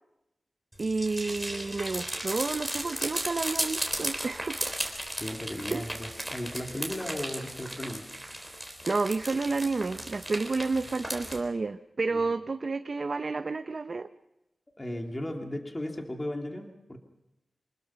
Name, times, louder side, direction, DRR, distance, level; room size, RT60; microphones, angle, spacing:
sound 1, 0.7-11.4, right 1 dB, ahead, 3.8 m, -35 dB
voice 1, 0.8-4.7 5.7-5.9 8.9-14.1, right 3 dB, 50° right, 9 dB, 0.7 m, -30 dB
voice 2, 5.2-8.1 12.1-12.3 14.8-17.0, left 1 dB, 20° left, 3 dB, 2.4 m, -36 dB
25.0 x 20.5 x 5.8 m, 0.92 s
wide cardioid pair, 100°, 0 cm